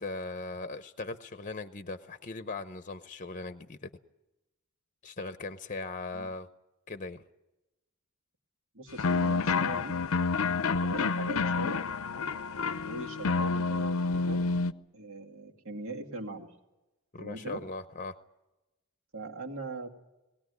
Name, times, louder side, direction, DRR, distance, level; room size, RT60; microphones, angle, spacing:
voice 1, 0.0-3.9 5.0-6.5 6.9-7.2 17.1-18.1, left 3 dB, 35° left, 11 dB, 0.8 m, -39 dB
voice 2, 8.7-10.0 10.8-11.8 12.8-14.5 14.9-16.5 17.2-17.6 19.1-19.9, right 2 dB, 65° right, 2 dB, 2.4 m, -40 dB
sound 1, 9.0-14.7, left 4 dB, 70° left, 0.7 m, -29 dB
20.0 x 17.5 x 9.5 m, 1.0 s
head